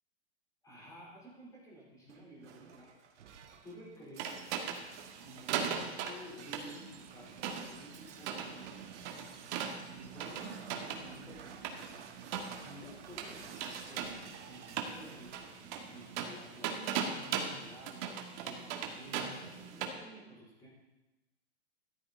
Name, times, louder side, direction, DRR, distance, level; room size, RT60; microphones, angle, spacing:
voice 1, 0.6-3.2 3.6-4.6 5.2-8.8 9.8-12.1 12.5-15.6 15.9-20.7, equal, 10° left, -4 dB, 4.4 m, -52 dB
Shatter, 2.1-17.7, right 7 dB, 85° right, 1.7 m, -54 dB
sound 1, 4.2-19.9, right 7 dB, 40° right, 1.6 m, -40 dB
14.0 x 11.0 x 4.3 m, 1.0 s
supercardioid pair, 150°, 34 cm